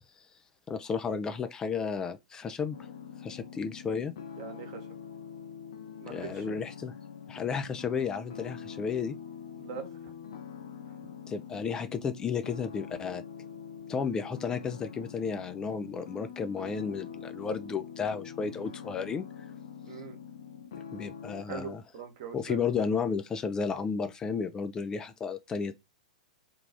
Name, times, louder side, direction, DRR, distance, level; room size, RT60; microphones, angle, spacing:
voice 1, 0.7-2.8 3.2-4.1 6.1-6.9 7.3-9.2 11.3-13.2 13.9-19.2 20.9-21.8 22.3-25.7, left 6 dB, 20° left, 0.4 m, -33 dB
sound 1, 2.7-21.4, left 7 dB, 55° left, 0.7 m, -44 dB
voice 2, 4.4-4.8 6.0-6.6 9.5-10.1 19.8-20.2 21.5-22.6, right 7 dB, 50° right, 1.1 m, -42 dB
3.4 x 2.4 x 3.3 m
figure-of-eight pair, 100°, 4 cm